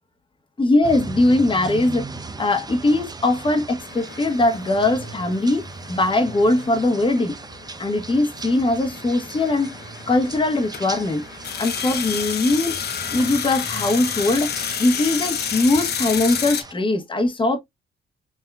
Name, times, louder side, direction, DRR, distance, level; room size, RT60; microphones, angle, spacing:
voice 1, 0.6-2.1 2.4-7.3 7.8-9.8 10.1-11.2 11.6-12.8 13.1-14.5 14.8-17.6, left 2 dB, 25° left, 1.2 m, -20 dB
sound 1, 0.8-16.7, right 3 dB, 20° right, 0.7 m, -38 dB
sound 2, 3.8-16.6, left 8 dB, 55° left, 0.9 m, -31 dB
5.8 x 2.7 x 2.3 m
cardioid pair, 90°, 20 cm